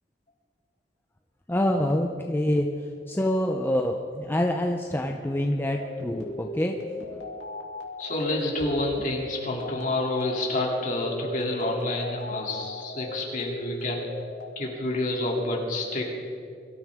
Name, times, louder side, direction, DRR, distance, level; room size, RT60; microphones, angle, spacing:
voice 1, 1.5-7.2 9.0-9.1, left 1 dB, 10° left, 2 dB, 0.6 m, -26 dB
sound 1, 5.6-14.5, left 2 dB, 65° left, 2.6 m, -38 dB
voice 2, 8.0-14.1 14.6-16.1, left 2 dB, 45° left, -2 dB, 2.9 m, -28 dB
23.5 x 13.5 x 3.6 m, 2.4 s
head